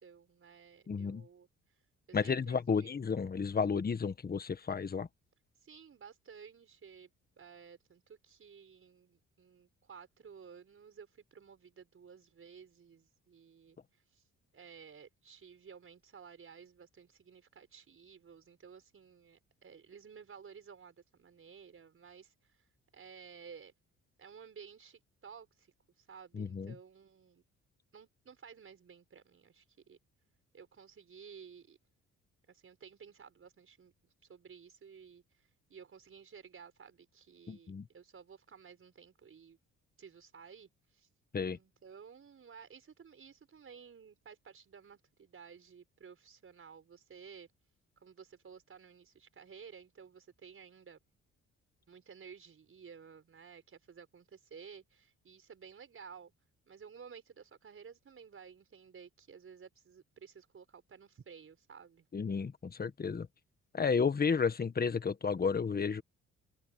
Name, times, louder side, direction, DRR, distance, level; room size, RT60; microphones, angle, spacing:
voice 1, 0.0-1.5 2.1-3.0 5.6-14.2 14.5-22.7 22.9-23.7 24.2-27.4 27.9-30.0 30.5-31.8 32.5-39.6 40.0-41.1 41.5-47.5 48.0-51.0 51.9-56.3 56.7-62.1, right 6 dB, 45° right, 5.7 m, -54 dB
voice 2, 0.9-1.2 2.1-5.1 26.3-26.7 37.5-37.9 41.3-41.6 62.1-63.3 63.7-66.0, left 5 dB, 30° left, 1.5 m, -32 dB
open air
cardioid pair, 90°, 30 cm